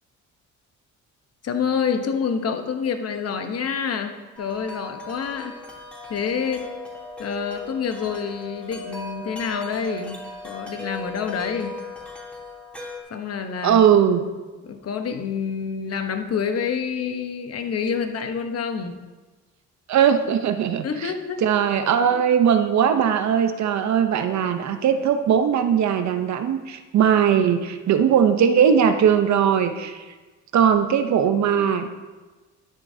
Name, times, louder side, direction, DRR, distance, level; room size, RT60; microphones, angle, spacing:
voice 1, 1.4-5.6 6.1-6.7 7.2-10.2 10.4-11.8 13.1-13.8 14.6-19.0 20.8-21.4, left 6 dB, 55° left, 6 dB, 1.1 m, -27 dB
Wind chime, 4.3-13.0, left 2 dB, 5° left, 3.1 m, -37 dB
voice 2, 13.6-14.2 19.9-21.1 21.4-30.0 30.5-31.9, right 8 dB, 65° right, 8 dB, 0.8 m, -19 dB
12.0 x 9.9 x 2.8 m, 1.3 s
cardioid pair, 90°, 30 cm